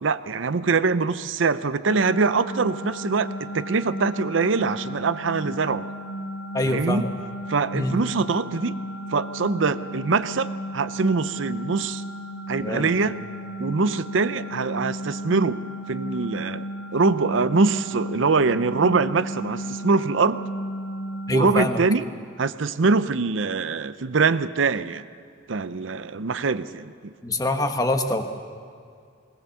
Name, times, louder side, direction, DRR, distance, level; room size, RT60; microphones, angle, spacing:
voice 1, 0.0-5.9 6.7-7.0 7.5-8.8 9.1-12.0 12.5-13.2 13.6-15.6 15.9-20.4 21.3-22.0 22.4-25.1 25.5-27.1, right 4 dB, 65° right, 14 dB, 0.6 m, -23 dB
sound 1, 1.9-21.7, equal, 75° left, 0.9 m, -34 dB
voice 2, 6.5-7.1 7.7-8.0 12.6-12.9 21.3-21.8 27.2-28.2, left 1 dB, 20° left, 6 dB, 1.2 m, -25 dB
20.5 x 18.5 x 7.0 m, 2.3 s
head